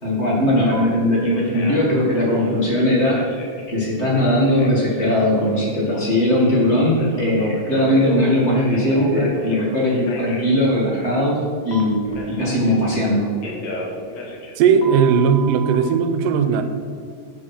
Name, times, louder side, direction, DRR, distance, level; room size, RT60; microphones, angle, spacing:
voice 1, 0.0-3.2 3.7-12.1 12.4-13.3, left 1 dB, 25° left, -4 dB, 1.9 m, -19 dB
Telephone, 0.7-0.8 1.2-1.9 2.2-3.6 4.2-6.7 7.0-9.7 10.1-10.4 11.7-13.1 13.4-15.8, left 1 dB, 60° left, 2.3 m, -33 dB
voice 2, 14.6-16.6, right 6 dB, 90° right, 9 dB, 2.4 m, -17 dB
11.5 x 8.0 x 4.4 m, 2.1 s
omnidirectional pair, 3.7 m